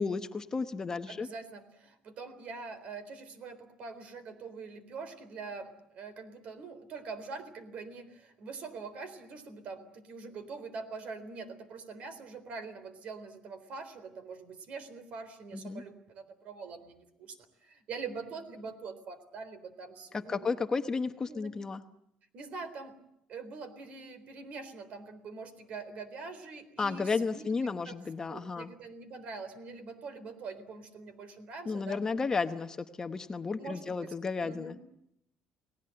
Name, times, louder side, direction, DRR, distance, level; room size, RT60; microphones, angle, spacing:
voice 1, 0.0-1.3 15.5-15.8 20.1-21.8 26.8-28.7 31.7-34.8, left 4 dB, 25° left, 8 dB, 1.0 m, -33 dB
voice 2, 1.1-20.5 21.3-21.5 22.3-22.9 23.3-28.0 28.3-32.0 33.6-34.1 34.4-34.8, right 4 dB, 55° right, 12 dB, 3.9 m, -44 dB
29.0 x 19.0 x 7.8 m, 0.78 s
cardioid pair, 140°, 3 cm